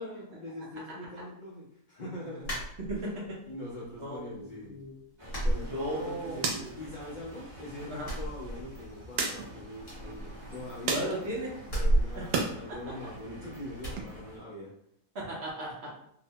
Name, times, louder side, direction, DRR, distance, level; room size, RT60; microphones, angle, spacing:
voice 1, 0.0-2.6 2.9-3.1 3.5-4.8 5.4-11.1 11.8-14.7, left 1 dB, 85° left, -7 dB, 0.4 m, -42 dB
sound 1, 2.4-3.3 3.7-4.4 4.7-4.8 5.3-6.4 6.7-7.5 7.9-9.1 9.4-9.5 9.8-11.0 11.6-13.3 13.8-14.1, right 1 dB, 40° left, 1.2 m, -32 dB
voice 2, 4.0-5.0 5.6-6.8 7.9-8.1 10.9-11.5 12.2-12.3 12.7-12.8 15.1-15.9, right 1 dB, 55° right, -5 dB, 0.8 m, -36 dB
sound 2, 5.2-14.4, equal, 30° right, 0.5 m, -49 dB
sound 3, 5.3-12.5 12.9-14.0, right 4 dB, 90° right, 1.2 m, -38 dB
2.9 x 2.1 x 2.7 m, 0.72 s
omnidirectional pair, 1.7 m